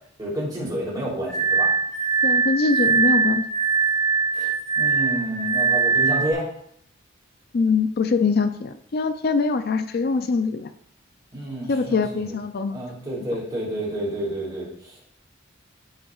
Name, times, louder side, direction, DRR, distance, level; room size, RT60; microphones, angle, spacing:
voice 1, 0.2-1.7 4.3-6.5 11.3-12.3 12.7-15.0, right 1 dB, 20° right, -5 dB, 3.2 m, -30 dB
Glass, 1.3-6.3, right 5 dB, 5° left, 2.9 m, -21 dB
voice 2, 2.2-3.5 7.5-10.7 11.7-12.8, left 4 dB, 50° left, 9 dB, 0.4 m, -23 dB
15.0 x 5.6 x 2.4 m, 0.70 s
head